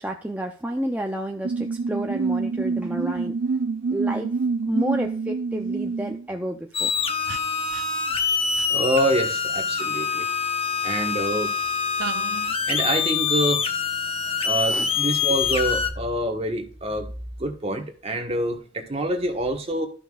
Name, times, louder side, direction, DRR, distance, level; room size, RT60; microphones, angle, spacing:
voice 1, 0.0-3.3 3.9-4.3 4.7-6.9 14.7-14.9, right 1 dB, 10° right, 2 dB, 0.6 m, -30 dB
sound 1, 1.4-6.2 7.3-7.4 7.7-7.8 8.1-8.3 8.6-8.7 12.0-12.5, right 4 dB, 75° right, 0.4 m, -27 dB
sound 2, 6.7-15.9, left 6 dB, 30° left, 0.8 m, -25 dB
voice 2, 8.7-10.2 10.8-11.5 12.7-13.6 14.4-17.1 17.4-19.9, right 1 dB, 30° right, 4 dB, 1.4 m, -26 dB
13.0 x 5.7 x 2.4 m, 0.41 s
head